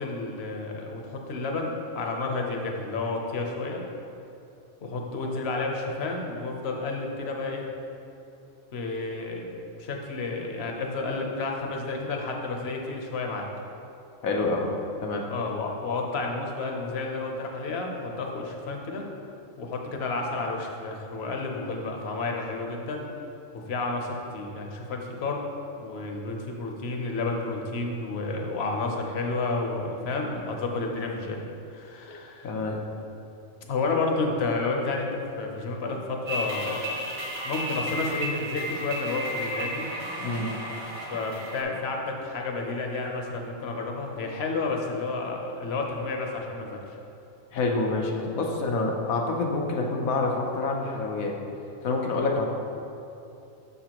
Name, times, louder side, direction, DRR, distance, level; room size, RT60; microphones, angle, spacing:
voice 1, 0.0-3.8 4.8-7.6 8.7-9.5 9.8-13.4 15.3-19.0 19.6-23.1 23.5-25.4 25.7-31.4 31.7-32.9 33.7-37.1 37.4-39.9 41.1-47.0, left 3 dB, 55° left, 1 dB, 1.0 m, -31 dB
voice 2, 14.2-14.7 15.0-15.3 32.4-32.8 40.2-40.5 47.5-51.4 51.8-52.5, left 3 dB, 90° left, 1 dB, 1.2 m, -27 dB
sound 1, 36.3-41.6, equal, 50° right, 1.5 m, -33 dB
6.9 x 6.8 x 2.9 m, 2.7 s
omnidirectional pair, 1.4 m